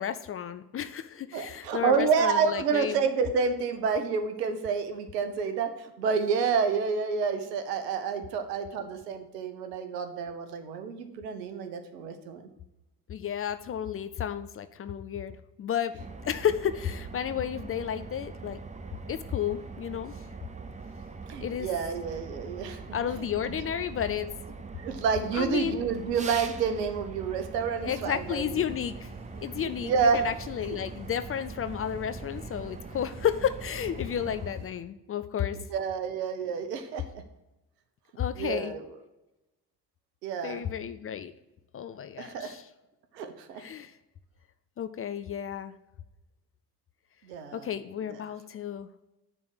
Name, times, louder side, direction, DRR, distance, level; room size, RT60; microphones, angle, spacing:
voice 1, 0.0-3.0 13.1-18.6 19.1-20.1 21.4-21.7 22.9-24.3 25.3-25.9 27.8-29.1 29.4-35.6 38.2-38.7 40.4-41.3 41.7-42.6 43.6-43.9 44.8-45.7 47.5-48.9, left 9 dB, 30° left, 11 dB, 0.4 m, -32 dB
voice 2, 1.3-12.5 21.3-22.8 23.2-23.7 24.7-28.7 29.8-30.2 30.7-30.8 35.5-37.2 38.3-39.0 40.2-40.6 42.2-42.5 43.1-43.6 47.2-47.7 48.1-48.2, right 6 dB, 75° right, 8 dB, 0.9 m, -29 dB
sound 1, 16.0-34.5, right 4 dB, 15° right, 0.6 m, -42 dB
sound 2, 27.8-34.7, right 2 dB, 55° right, 1.7 m, -48 dB
9.7 x 3.4 x 6.2 m, 0.97 s
figure-of-eight pair, 45°, 48 cm